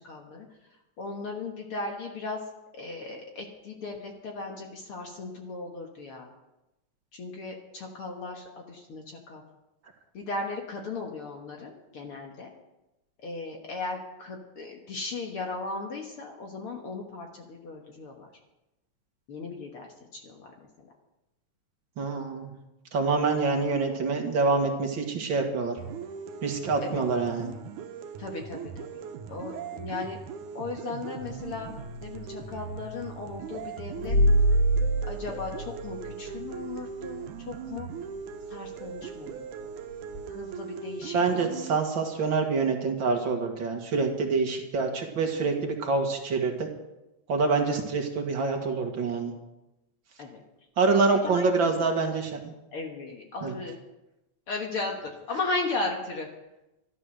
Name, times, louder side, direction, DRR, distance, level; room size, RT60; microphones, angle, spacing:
voice 1, 0.1-0.5 1.0-2.4 2.8-6.3 7.1-9.4 10.1-12.5 13.2-18.3 19.3-20.5 26.8-27.0 28.2-28.9 29.3-30.2 30.6-34.2 35.1-37.9 38.5-39.5 40.3-41.5 50.2-50.3 51.3-51.7 52.7-53.7 54.5-56.3, left 3 dB, 55° left, 1 dB, 2.1 m, -36 dB
voice 2, 22.0-22.5 22.9-25.8 26.4-27.5 41.1-46.7 47.3-49.3 50.8-52.5 53.4-53.6, right 4 dB, 45° right, 3 dB, 2.4 m, -26 dB
sound 1, 25.8-41.8, right 7 dB, 85° right, 2.4 m, -40 dB
sound 2, 31.2-32.5 34.0-36.5 37.0-37.1 40.1-40.3, right 1 dB, 25° left, 1.2 m, -25 dB
13.5 x 12.0 x 6.4 m, 0.95 s
omnidirectional pair, 3.4 m